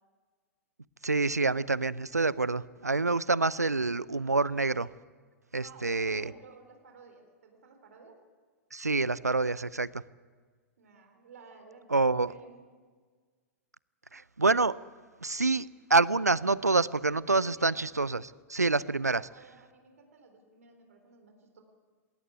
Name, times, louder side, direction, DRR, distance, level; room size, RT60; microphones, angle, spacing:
voice 1, 1.0-4.9 5.5-6.3 8.7-10.0 11.9-12.3 14.1-14.8 15.2-19.2, right 3 dB, 90° right, 21 dB, 0.6 m, -27 dB
voice 2, 5.6-8.2 10.8-12.6 17.2-17.8 18.7-21.6, right 4 dB, 65° right, 4 dB, 3.8 m, -54 dB
20.0 x 18.0 x 9.5 m, 1.5 s
figure-of-eight pair, 105°, 8 cm